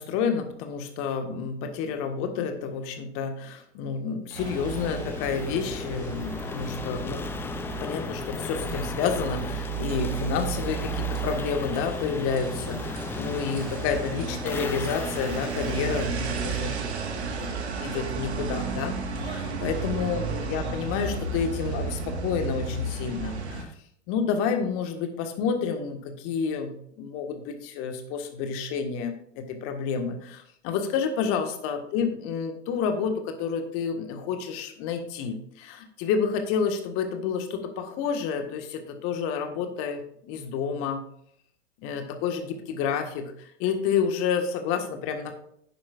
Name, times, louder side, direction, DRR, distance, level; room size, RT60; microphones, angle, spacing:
voice 1, 0.0-7.3 7.8-16.9 17.4-18.9 19.2-23.7 24.1-26.7 27.0-41.0 41.8-45.3, left 6 dB, 40° left, 6 dB, 1.6 m, -29 dB
sound 1, 4.3-17.2, left 5 dB, 5° left, 0.3 m, -37 dB
sound 2, 4.3-23.6, right 4 dB, 70° right, 1.7 m, -33 dB
11.5 x 9.5 x 2.5 m, 0.67 s
figure-of-eight pair, 95°, 35 cm